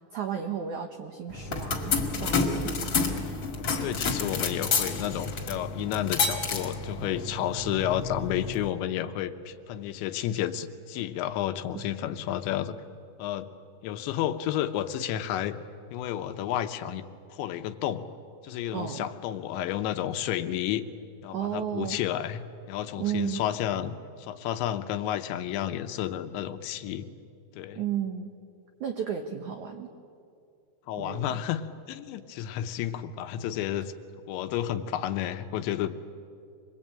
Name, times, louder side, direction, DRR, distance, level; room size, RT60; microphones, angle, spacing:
voice 1, 0.1-2.9 11.7-11.9 18.7-19.0 21.3-22.0 23.0-23.4 27.7-28.3 28.8-29.9 31.0-31.3, right 9 dB, 85° right, 5 dB, 1.7 m, -33 dB
sound 1, 1.3-8.7, left 4 dB, 40° left, 1.9 m, -30 dB
voice 2, 3.6-12.8 13.2-13.5 13.8-15.6 15.9-17.0 17.3-18.0 18.4-20.8 21.2-22.4 22.7-27.1 27.5-27.8 30.9-33.9 34.3-36.0, left 11 dB, 85° left, 9 dB, 3.2 m, -31 dB
26.5 x 21.0 x 8.8 m, 2.4 s
omnidirectional pair, 5.1 m